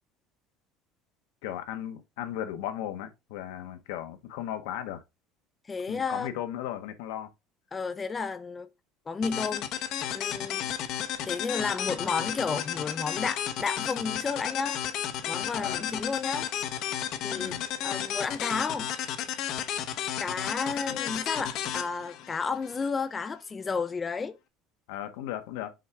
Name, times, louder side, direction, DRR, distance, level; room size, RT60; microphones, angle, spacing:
voice 1, 1.4-5.0 5.9-7.3 15.5-15.8 17.3-17.7 20.9-21.0 24.9-25.7, left 11 dB, 90° left, 1.2 m, -36 dB
voice 2, 5.7-6.3 7.7-8.7 9.1-9.7 10.1-10.6 11.2-14.8 15.3-16.5 17.2-17.6 17.8-18.9 20.2-24.4, left 5 dB, 15° left, 0.4 m, -32 dB
sound 1, 9.2-22.9, left 10 dB, 50° left, 0.8 m, -33 dB
6.4 x 4.6 x 3.4 m
cardioid pair, 160°, 0 cm